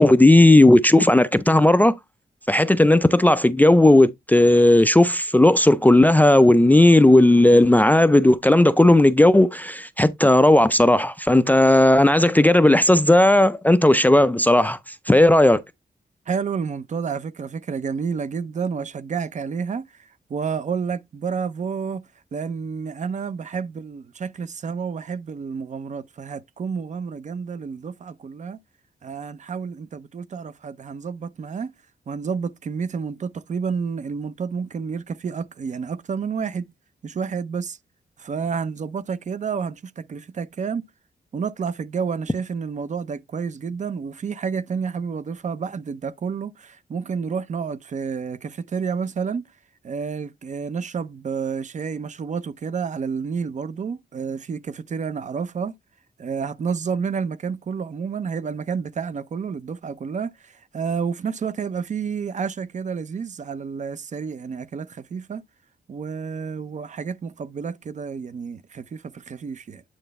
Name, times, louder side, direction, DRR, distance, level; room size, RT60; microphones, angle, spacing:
voice 1, 0.0-1.9 2.5-14.8 15.1-15.6, left 1 dB, 10° left, 0.4 m, -15 dB
voice 2, 16.3-28.6 29.0-31.7 32.1-36.6 37.0-37.8 38.2-40.8 41.3-49.4 49.8-55.7 56.2-65.4 65.9-69.8, right 6 dB, 45° right, 0.6 m, -30 dB
8.9 x 3.3 x 4.0 m
wide cardioid pair, 165°, 17 cm